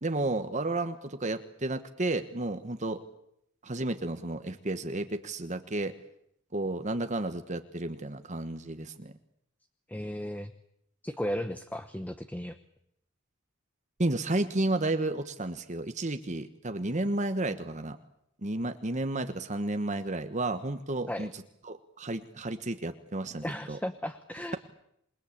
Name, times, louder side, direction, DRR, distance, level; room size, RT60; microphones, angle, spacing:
voice 1, 0.0-3.0 3.6-5.9 6.5-9.1 14.0-18.0 18.4-21.3 21.6-23.8, right 2 dB, 35° right, 8 dB, 1.2 m, -32 dB
voice 2, 9.9-10.5 11.0-12.6 21.1-21.3 23.4-24.6, equal, 10° left, 9 dB, 1.0 m, -35 dB
27.5 x 20.5 x 8.7 m, 0.75 s
head